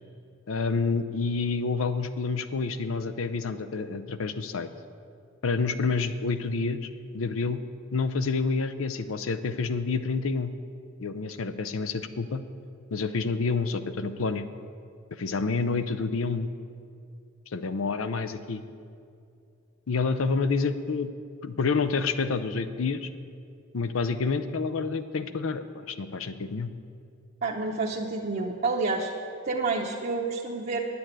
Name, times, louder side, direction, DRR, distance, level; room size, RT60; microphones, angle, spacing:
voice 1, 0.5-4.7 5.4-7.6 7.9-10.5 11.0-12.4 12.9-14.5 15.2-16.5 17.5-18.6 19.9-21.1 21.4-23.1 23.7-26.7, left 4 dB, 85° left, 11 dB, 0.6 m, -28 dB
voice 2, 27.4-29.1 29.4-30.8, right 3 dB, 50° right, -3 dB, 0.7 m, -29 dB
9.7 x 7.0 x 9.0 m, 2.5 s
head